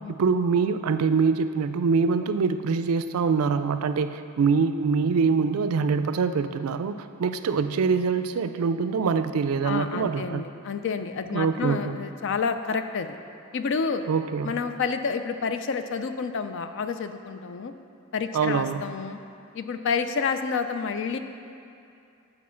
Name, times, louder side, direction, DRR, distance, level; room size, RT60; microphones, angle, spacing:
voice 1, 0.1-10.4 11.3-12.0 14.1-14.5 18.3-18.8, right 5 dB, 80° right, 10 dB, 0.4 m, -24 dB
voice 2, 9.6-13.2 13.5-14.0 14.4-17.7 18.1-19.2 19.5-21.2, left 5 dB, 55° left, 9 dB, 0.4 m, -29 dB
8.6 x 4.5 x 5.6 m, 2.6 s
head